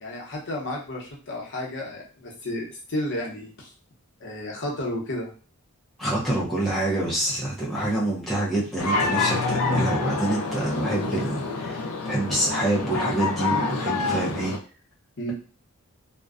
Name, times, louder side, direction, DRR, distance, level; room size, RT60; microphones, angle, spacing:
voice 1, 0.0-3.7 4.2-5.3 15.2-15.3, left 1 dB, 55° left, -1 dB, 0.7 m, -32 dB
voice 2, 6.0-14.5, right 1 dB, ahead, -7 dB, 0.5 m, -26 dB
sound 1, 8.8-14.6, left 3 dB, 90° left, 0.5 m, -27 dB
2.5 x 2.1 x 2.4 m, 0.38 s
head